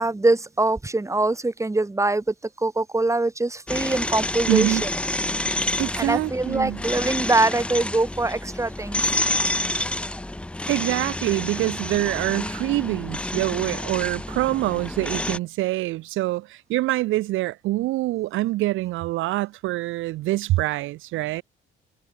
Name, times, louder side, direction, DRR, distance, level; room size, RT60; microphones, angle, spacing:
voice 1, 0.0-4.9 6.0-9.0 9.5-9.6, right 2 dB, 15° right, 1.9 m, -23 dB
sound 1, 3.7-15.4, left 1 dB, 5° left, 0.5 m, -28 dB
voice 2, 4.5-4.8 5.8-6.8 10.7-21.4, right 17 dB, 80° right, 0.4 m, -25 dB
cardioid pair, 90°, 20 cm